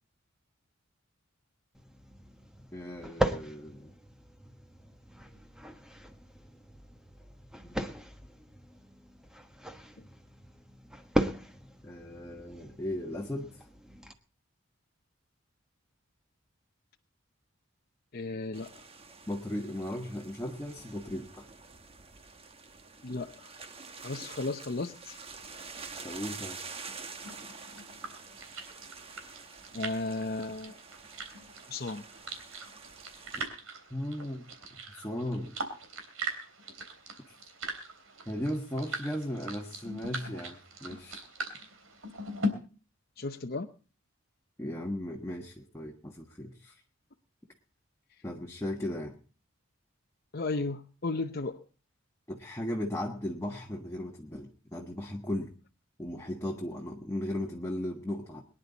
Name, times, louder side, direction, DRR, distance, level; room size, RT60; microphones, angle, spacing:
sound 1, 1.7-14.1, right 1 dB, 5° right, 1.2 m, -38 dB
voice 1, 2.7-3.9 7.6-7.9 11.8-13.7 19.3-21.5 26.0-26.6 33.9-34.4 34.9-35.5 37.3-37.4 38.3-41.2 44.6-46.8 48.2-49.1 52.3-55.5 56.0-58.4, left 1 dB, 15° left, 0 dB, 1.4 m, -36 dB
voice 2, 18.1-18.9 23.0-23.5 24.0-25.2 29.7-30.8 31.7-32.1 43.2-43.7 50.3-51.6, left 3 dB, 50° left, 4 dB, 0.8 m, -35 dB
sound 2, 18.5-33.5, right 4 dB, 30° right, 1.2 m, -47 dB
sound 3, 27.2-42.5, right 1 dB, 85° right, 3.4 m, -41 dB
22.5 x 10.0 x 4.0 m, 0.38 s
head